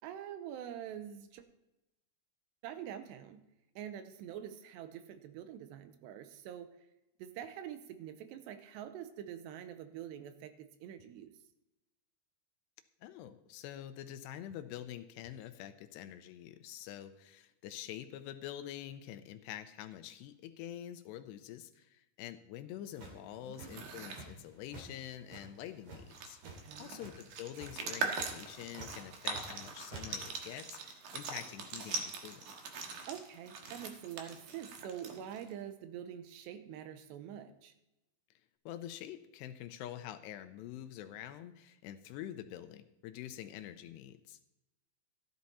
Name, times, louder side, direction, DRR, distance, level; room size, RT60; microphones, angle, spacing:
voice 1, 0.0-1.5 2.6-3.4 3.8-6.7 7.2-11.3 23.4-23.9 26.4-27.0 33.1-37.7, right 10 dB, 80° right, 10 dB, 2.8 m, -45 dB
voice 2, 13.0-26.4 26.8-32.4 38.7-44.4, left 11 dB, 80° left, 10 dB, 2.7 m, -46 dB
sound 1, 23.0-24.4 24.7-24.9 25.3-26.6 27.0-27.3 27.5-27.8 28.1-28.3 28.7-29.6 29.9-30.0, right 3 dB, 45° right, 3.1 m, -49 dB
sound 2, 23.5-24.2 25.7-25.8 26.0-35.5, right 5 dB, 60° right, 2.4 m, -42 dB
14.0 x 10.5 x 4.2 m, 0.93 s
omnidirectional pair, 5.0 m